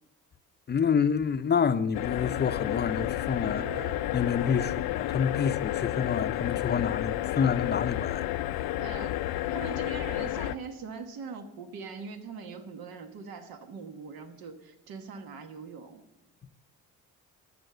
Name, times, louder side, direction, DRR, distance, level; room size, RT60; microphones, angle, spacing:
voice 1, 0.7-8.3 8.6-8.7, left 7 dB, 30° left, 0.6 m, -28 dB
sound 1, 1.9-10.6, left 15 dB, 85° left, 0.5 m, -31 dB
sound 2, 3.6-5.4, right 9 dB, 15° right, 0.5 m, -48 dB
voice 2, 8.8-9.2 9.5-16.0, right 5 dB, 80° right, 1.3 m, -42 dB
12.5 x 7.4 x 6.7 m
cardioid pair, 75°, 35 cm